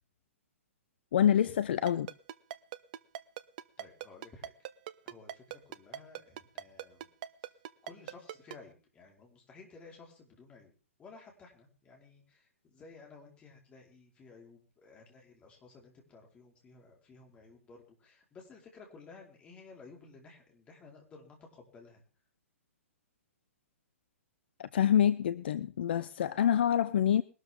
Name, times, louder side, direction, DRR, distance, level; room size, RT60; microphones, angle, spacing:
voice 1, 1.1-2.1 24.6-27.2, left 9 dB, 45° left, 15 dB, 0.7 m, -26 dB
Ringtone, 1.9-8.6, right 12 dB, 35° right, 0.7 m, -40 dB
voice 2, 3.8-4.5 5.0-7.1 7.8-10.7 11.0-22.0, left 4 dB, 15° left, 0 dB, 4.7 m, -55 dB
21.0 x 12.5 x 3.8 m, 0.37 s
figure-of-eight pair, 120°, 7 cm